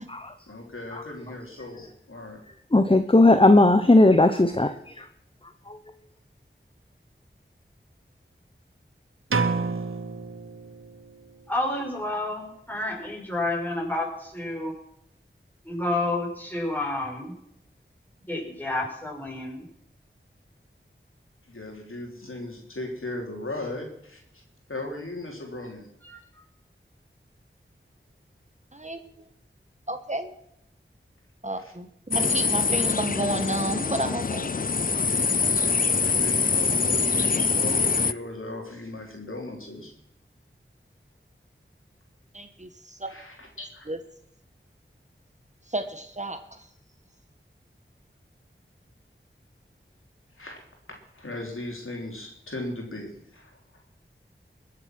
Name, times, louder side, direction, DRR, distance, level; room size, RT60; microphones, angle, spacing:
voice 1, 0.5-2.4 21.5-24.4 24.7-25.9 31.6-31.7 36.0-39.9 43.0-43.9 50.4-50.6 51.1-53.6, left 2 dB, 85° left, 1 dB, 3.4 m, -37 dB
voice 2, 2.7-4.7 5.0-5.1, left 2 dB, 25° left, 8 dB, 0.9 m, -17 dB
sound 1, 9.3-11.2, right 4 dB, 85° right, 1.0 m, -29 dB
voice 3, 11.5-14.7 15.6-17.3 18.3-19.6 26.1-26.2, left 2 dB, 10° left, -2 dB, 5.9 m, -29 dB
voice 4, 28.7-29.3 29.9-30.3 31.4-34.5 42.3-43.1 43.9-44.0 45.7-46.7, right 1 dB, 35° right, 8 dB, 1.3 m, -31 dB
sound 2, 32.1-38.1, left 5 dB, 45° left, 0.4 m, -24 dB
21.5 x 7.8 x 6.1 m, 0.75 s
wide cardioid pair, 55°, 21 cm